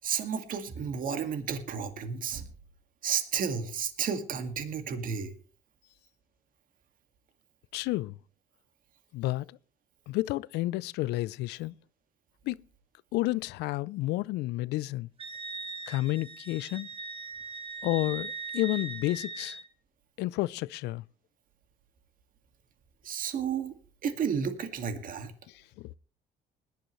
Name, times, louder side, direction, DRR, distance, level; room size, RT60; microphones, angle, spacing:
voice 1, 0.0-2.5 3.0-5.3 23.0-23.7 24.0-25.3, right 7 dB, 55° right, 2.2 m, -32 dB
voice 2, 7.7-8.1 9.1-9.4 10.1-11.7 12.5-12.6 13.1-15.1 15.9-16.9 17.8-19.6 20.2-21.0 25.8-25.9, left 18 dB, 85° left, 0.5 m, -30 dB
Wind instrument woodwind instrument, 15.2-19.7, right 3 dB, 35° right, 2.3 m, -40 dB
20.0 x 11.5 x 3.2 m
cardioid pair, 110°, 17 cm